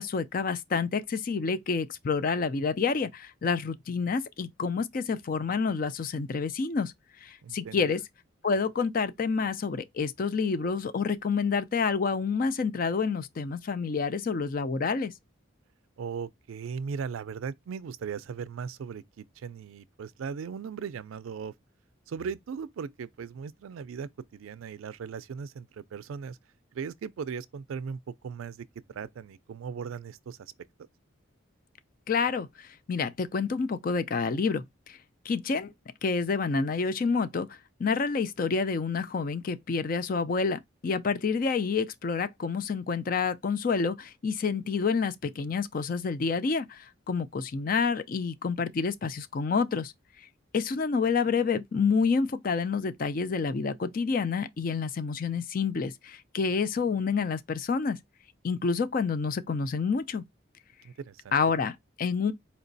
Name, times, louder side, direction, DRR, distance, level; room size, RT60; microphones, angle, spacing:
voice 1, 0.0-6.9 7.2-8.0 8.4-15.1 32.1-35.0 35.3-35.7 36.0-49.9 50.5-58.0 58.4-60.2 61.3-62.3, left 5 dB, 45° left, 0.4 m, -28 dB
voice 2, 7.4-8.0 16.0-21.5 22.1-26.4 26.7-30.5 60.8-61.4, right 6 dB, 80° right, 0.4 m, -38 dB
4.3 x 2.9 x 2.6 m
head